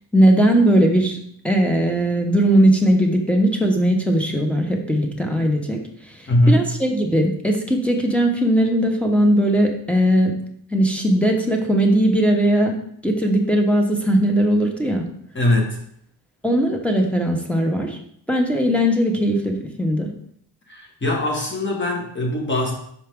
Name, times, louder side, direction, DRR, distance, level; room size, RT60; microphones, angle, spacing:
voice 1, 0.1-1.2 1.4-5.8 6.5-10.3 10.7-12.7 13.0-15.0 16.4-18.0 18.3-20.1, right 1 dB, 5° left, 2 dB, 1.0 m, -18 dB
voice 2, 6.3-6.7 15.3-15.8 20.7-22.7, left 1 dB, 25° left, 0 dB, 1.6 m, -20 dB
5.8 x 4.6 x 3.6 m, 0.68 s
cardioid pair, 100°, 43 cm